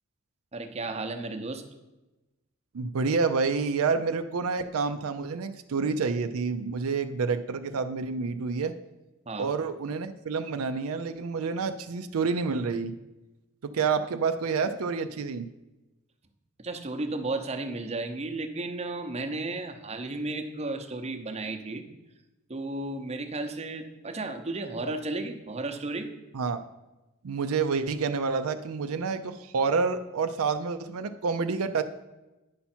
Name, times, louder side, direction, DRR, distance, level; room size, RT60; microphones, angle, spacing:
voice 1, 0.5-1.6 9.3-9.5 16.6-21.8 22.5-26.1, right 2 dB, 30° right, 5 dB, 0.7 m, -33 dB
voice 2, 2.7-8.7 9.4-12.9 13.6-15.5 26.3-26.6 27.2-31.8, right 5 dB, 85° right, 8 dB, 0.5 m, -28 dB
9.6 x 5.7 x 4.3 m, 1.0 s
head